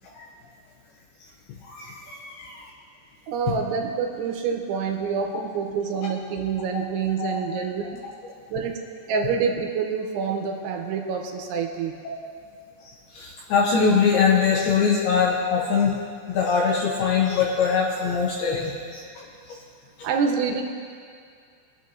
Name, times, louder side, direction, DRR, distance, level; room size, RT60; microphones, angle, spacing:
voice 1, 1.6-2.6 6.7-6.8 7.2-7.4 12.8-16.0 16.3-19.6, left 6 dB, 75° left, -3 dB, 2.4 m, -23 dB
voice 2, 3.3-7.8 8.5-8.7 9.1-12.0 20.0-20.6, right 6 dB, 85° right, 3 dB, 3.1 m, -26 dB
23.5 x 8.8 x 2.7 m, 2.2 s
omnidirectional pair, 5.5 m